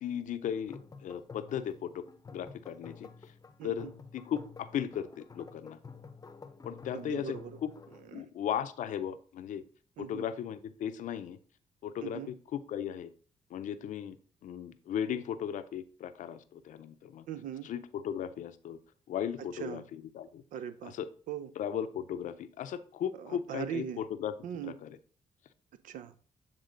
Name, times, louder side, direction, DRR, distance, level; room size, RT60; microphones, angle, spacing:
voice 1, 0.0-2.0 2.3-3.1 3.6-3.9 4.1-5.8 6.6-7.7 8.1-9.6 10.1-11.4 11.8-13.1 13.5-14.1 14.4-17.3 17.6-18.8 19.1-20.4 20.9-21.1 21.6-24.3 24.6-25.0, left 9 dB, 75° left, 11 dB, 0.6 m, -36 dB
sound 1, 0.5-8.1, left 5 dB, 25° left, 0.6 m, -50 dB
voice 2, 3.6-3.9 6.9-7.6 8.1-8.3 10.0-10.2 12.0-12.3 17.3-17.7 19.5-19.8 20.5-20.9 21.3-21.5 23.1-24.0 24.4-24.8 25.8-26.1, right 9 dB, 85° right, 13 dB, 0.4 m, -40 dB
8.1 x 3.6 x 3.7 m, 0.41 s
cardioid pair, 75°, 13 cm